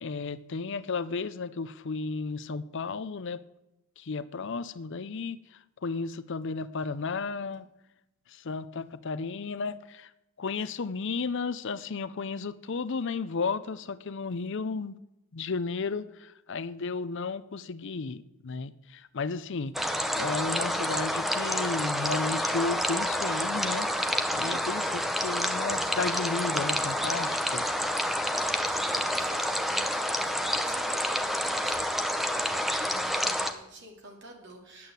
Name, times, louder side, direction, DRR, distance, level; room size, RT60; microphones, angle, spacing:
voice 1, 0.0-3.4 4.0-7.7 8.3-10.1 10.4-15.0 15.3-23.9 24.3-27.7, left 4 dB, 55° left, 14 dB, 0.6 m, -33 dB
sound 1, 19.7-33.5, equal, ahead, 0.8 m, -28 dB
voice 2, 28.8-34.9, right 1 dB, 55° right, 1 dB, 3.0 m, -49 dB
11.0 x 8.6 x 8.0 m, 0.91 s
head